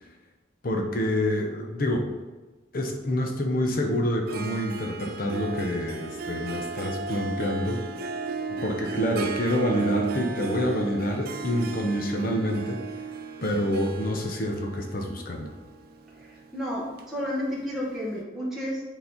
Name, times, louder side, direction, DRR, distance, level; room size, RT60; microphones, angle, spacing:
voice 1, 0.6-2.1 2.7-7.8 8.6-12.8 13.4-15.5, equal, 50° left, 3 dB, 0.8 m, -27 dB
Harp, 4.3-17.8, right 4 dB, 55° right, 0.5 m, -35 dB
voice 2, 16.2-18.8, equal, ahead, -7 dB, 1.2 m, -31 dB
7.0 x 4.1 x 4.0 m, 1.2 s
head